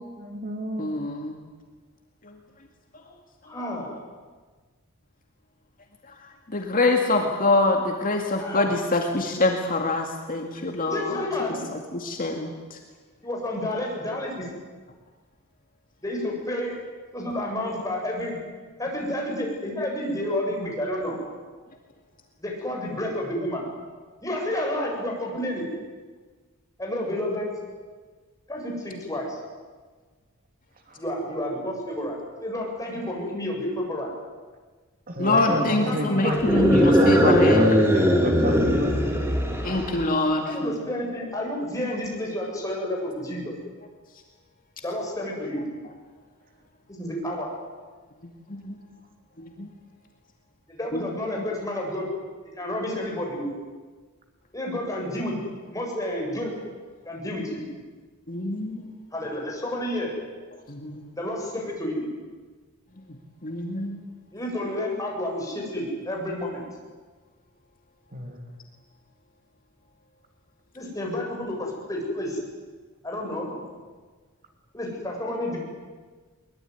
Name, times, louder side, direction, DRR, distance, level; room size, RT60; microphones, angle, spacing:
voice 1, 0.0-1.0 30.9-31.0 35.1-39.3 39.5-39.9 68.1-68.4, right 1 dB, 40° right, 4 dB, 2.8 m, -30 dB
voice 2, 0.8-1.3 2.2-2.4 6.5-11.2 11.7-12.8 35.2-37.6 39.6-40.7 48.5-48.8 49.4-49.7 50.9-51.0 58.3-58.9 60.7-61.1 63.4-64.0, left 2 dB, 40° left, 2 dB, 2.3 m, -25 dB
voice 3, 3.5-4.0 8.4-8.8 10.9-11.7 13.2-14.5 16.0-16.7 17.1-18.4 18.8-21.2 22.4-23.6 24.2-25.6 26.8-27.5 28.5-29.4 31.0-34.1 35.3-36.5 40.4-43.5 44.8-45.6 46.9-47.5 50.7-52.2 52.6-53.5 54.5-55.4 55.7-56.5 57.0-57.6 59.1-60.1 61.1-62.0 64.3-66.7 70.7-72.4 73.0-73.6 74.7-75.6, left 1 dB, 15° left, -1 dB, 7.8 m, -30 dB
sound 1, 36.3-40.0, equal, 10° right, 3.2 m, -20 dB
23.0 x 21.5 x 9.6 m, 1.4 s
head